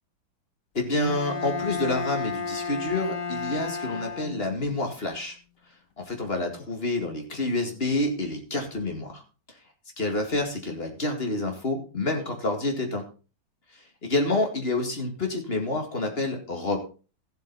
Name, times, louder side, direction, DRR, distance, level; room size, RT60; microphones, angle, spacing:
voice 1, 0.7-5.4 6.0-9.2 10.0-13.0 14.0-16.8, left 2 dB, 30° left, 3 dB, 2.2 m, -28 dB
Bowed string instrument, 1.0-4.8, left 5 dB, 50° left, 1.3 m, -32 dB
14.5 x 7.9 x 4.1 m, 0.34 s
omnidirectional pair, 2.1 m